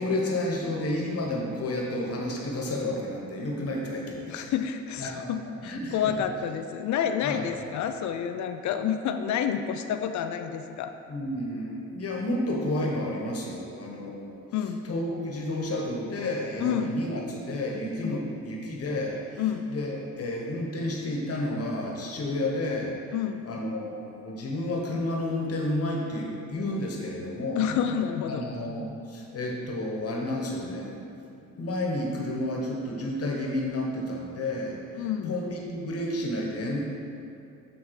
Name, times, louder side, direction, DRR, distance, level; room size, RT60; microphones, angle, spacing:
voice 1, 0.0-4.4 5.0-5.3 5.6-6.1 7.2-7.4 11.1-14.4 14.8-23.0 23.4-27.7 28.3-31.1 31.6-37.0, left 1 dB, 50° left, -1 dB, 1.2 m, -31 dB
voice 2, 4.3-10.9 14.5-14.8 16.6-17.0 18.0-18.2 19.4-19.7 23.1-23.5 27.6-28.4 35.0-35.4, left 8 dB, 70° left, 8 dB, 0.4 m, -29 dB
9.0 x 3.5 x 4.7 m, 2.6 s
cardioid pair, 90°, 30 cm